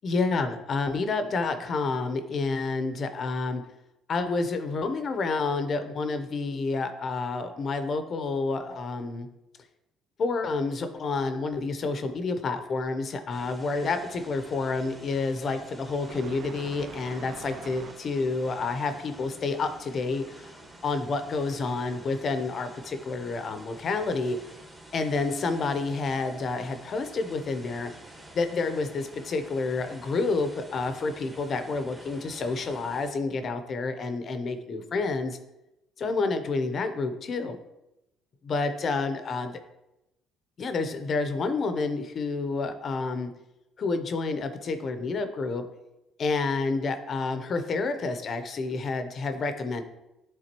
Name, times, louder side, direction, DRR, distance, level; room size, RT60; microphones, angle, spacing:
voice 1, 0.0-3.6 4.1-9.3 10.2-20.5 20.8-24.4 24.9-27.9 28.3-35.4 36.0-37.6 38.4-39.6 40.6-43.3 43.8-45.6 46.2-49.8, left 3 dB, 45° left, 8 dB, 0.7 m, -29 dB
sound 1, 13.3-33.1, right 1 dB, 10° right, 1.4 m, -49 dB
sound 2, 16.0-21.2, right 6 dB, 50° right, 0.5 m, -48 dB
11.0 x 3.7 x 3.0 m, 0.92 s
cardioid pair, 110°, 0 cm